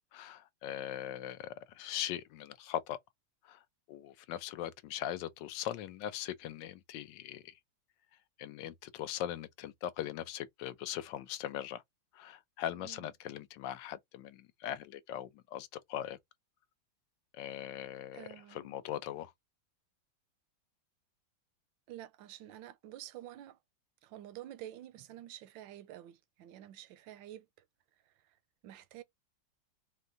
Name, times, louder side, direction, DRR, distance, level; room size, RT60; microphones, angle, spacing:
voice 1, 0.1-3.0 3.4-3.6 3.9-7.5 8.4-11.8 12.1-16.2 17.3-19.3, left 11 dB, 75° left, 1.2 m, -40 dB
voice 2, 12.7-13.1 18.1-18.8 21.9-23.6 24.0-27.5 28.1-28.2 28.6-29.0, right 13 dB, 85° right, 1.4 m, -49 dB
4.3 x 2.2 x 3.8 m
omnidirectional pair, 2.0 m